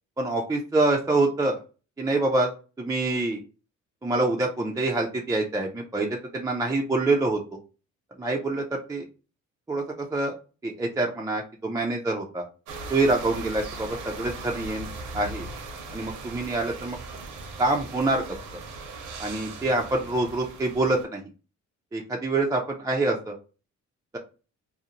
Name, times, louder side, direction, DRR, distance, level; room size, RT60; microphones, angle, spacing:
voice 1, 0.2-1.6 2.0-2.5 2.8-3.4 4.0-7.4 8.2-8.6 8.9-9.0 9.7-10.3 10.6-12.5 12.9-14.9 15.1-15.5 15.9-17.0 17.6-18.2 19.2-21.2 21.9-23.3, right 2 dB, 10° right, 0 dB, 0.4 m, -26 dB
sound 1, 12.7-21.1, right 3 dB, 80° right, 0.8 m, -39 dB
2.5 x 2.0 x 2.8 m, 0.34 s
cardioid pair, 90°, 30 cm